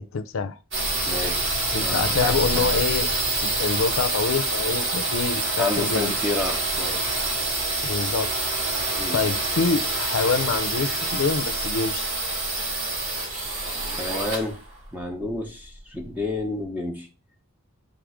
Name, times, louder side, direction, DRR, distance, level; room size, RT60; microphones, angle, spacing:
voice 1, 0.1-0.6 1.7-3.1 3.4-6.1 7.8-8.3 9.1-12.0, left 4 dB, 70° left, 0.5 m, -26 dB
sound 1, 0.7-16.3, right 2 dB, 60° right, 2.6 m, -26 dB
voice 2, 1.0-2.7 5.6-7.0 9.0-9.2 14.0-14.6 14.9-17.1, left 2 dB, 10° right, 0.9 m, -30 dB
5.4 x 3.6 x 5.0 m
head